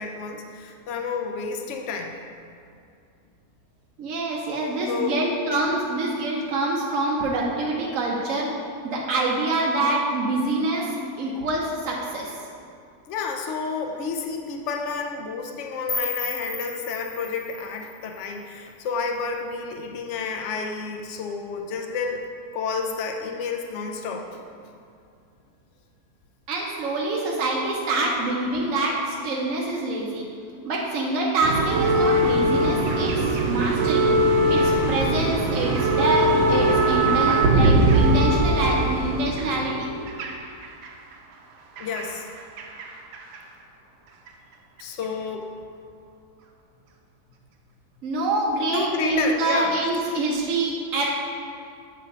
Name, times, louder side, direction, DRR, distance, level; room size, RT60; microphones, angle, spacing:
voice 1, 0.0-2.1 4.9-5.1 13.1-22.2 22.5-24.4 41.8-42.3 44.8-45.5 48.6-49.7, left 5 dB, 60° left, 3 dB, 0.8 m, -30 dB
voice 2, 4.0-8.5 8.8-10.9 11.2-12.3 26.5-30.2 30.6-34.1 34.5-39.9 48.0-51.0, right 2 dB, 60° right, -3 dB, 1.1 m, -26 dB
sound 1, 15.9-18.8, left 4 dB, 80° left, 0.5 m, -34 dB
sound 2, 31.4-40.9 41.8-42.9 43.1-43.4 44.3-44.4, right 1 dB, 80° right, 1.2 m, -21 dB
8.5 x 3.2 x 5.2 m, 2.4 s
omnidirectional pair, 1.7 m